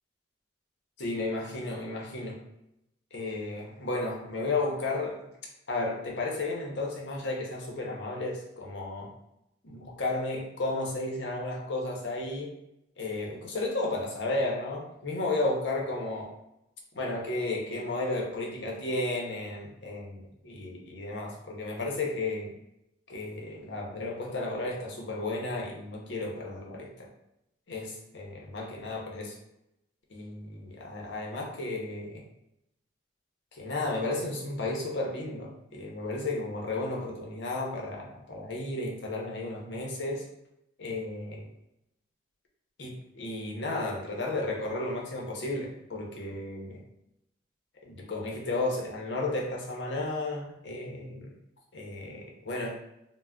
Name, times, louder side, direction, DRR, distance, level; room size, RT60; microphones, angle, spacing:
voice 1, 1.0-2.4 3.1-5.2 5.7-9.1 9.6-12.5 13.0-16.3 16.9-22.5 23.1-27.1 27.7-29.3 30.1-32.2 33.5-40.2 40.8-41.4 42.8-46.8 47.9-51.3 51.7-52.7, left 2 dB, 65° left, -1 dB, 0.6 m, -33 dB
3.5 x 2.1 x 2.2 m, 0.85 s
head